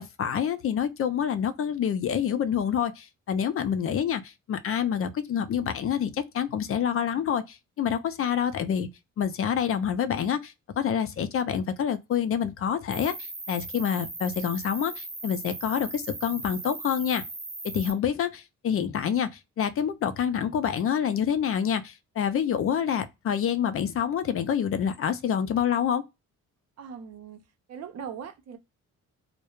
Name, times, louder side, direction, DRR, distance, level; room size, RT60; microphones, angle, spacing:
voice 1, 0.0-8.9 9.2-13.1 13.5-17.2 17.7-19.3 19.6-26.0, left 8 dB, 50° left, 0.4 m, -27 dB
Cricket, 12.9-17.9, right 2 dB, 15° right, 0.7 m, -38 dB
voice 2, 26.8-27.4 27.7-28.6, right 7 dB, 60° right, 0.6 m, -40 dB
2.3 x 2.1 x 2.9 m
cardioid pair, 90°, 30 cm